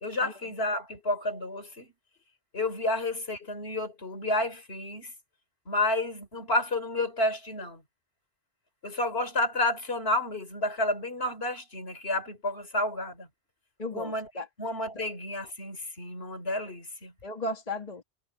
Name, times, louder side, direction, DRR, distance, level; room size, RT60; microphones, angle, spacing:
voice 1, 0.0-1.9 2.5-5.1 5.7-7.8 8.8-13.3 13.9-14.3 14.6-17.1, left 2 dB, 65° left, 3.7 m, -30 dB
voice 2, 13.8-14.5 14.9-15.0 17.2-18.0, left 2 dB, 35° left, 2.1 m, -35 dB
omnidirectional pair, 1.1 m